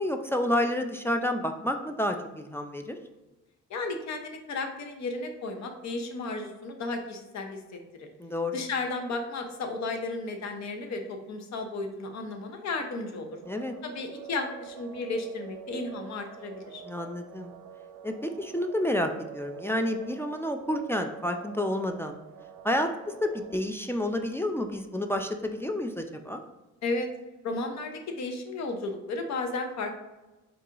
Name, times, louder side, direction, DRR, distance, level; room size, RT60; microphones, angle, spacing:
voice 1, 0.0-3.0 8.2-8.6 13.5-13.7 16.8-17.5 18.0-22.2 22.6-26.4, left 1 dB, 10° left, 5 dB, 0.3 m, -30 dB
voice 2, 3.7-8.1 8.5-13.4 13.8-16.8 26.8-27.1 27.4-29.9, left 3 dB, 65° left, 5 dB, 0.8 m, -34 dB
sound 1, 13.4-23.5, right 9 dB, 70° right, 0.5 m, -46 dB
4.0 x 2.8 x 3.7 m, 1.1 s
cardioid pair, 90°, 30 cm